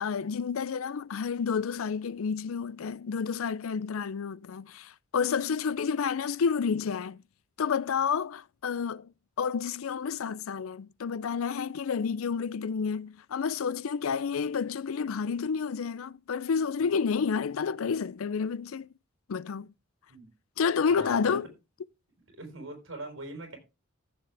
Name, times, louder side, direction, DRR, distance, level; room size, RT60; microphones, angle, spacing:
voice 1, 0.0-7.2 7.6-9.1 9.4-18.9 19.3-19.7 20.6-21.5, left 6 dB, 85° left, 0.5 m, -30 dB
voice 2, 20.9-21.4 22.3-23.6, right 2 dB, 65° right, 4.5 m, -42 dB
14.5 x 6.9 x 3.4 m
head